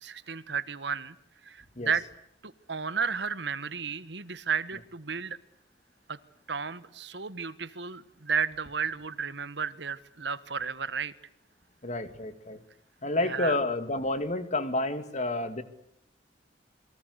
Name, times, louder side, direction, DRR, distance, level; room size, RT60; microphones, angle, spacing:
voice 1, 0.0-1.1 1.4-2.0 2.4-5.4 6.1-6.2 6.5-11.1 13.2-13.6, right 6 dB, 70° right, 15 dB, 1.5 m, -33 dB
voice 2, 11.8-12.6 13.0-15.6, left 2 dB, 40° left, 11 dB, 2.5 m, -29 dB
28.0 x 23.5 x 8.2 m, 0.69 s
head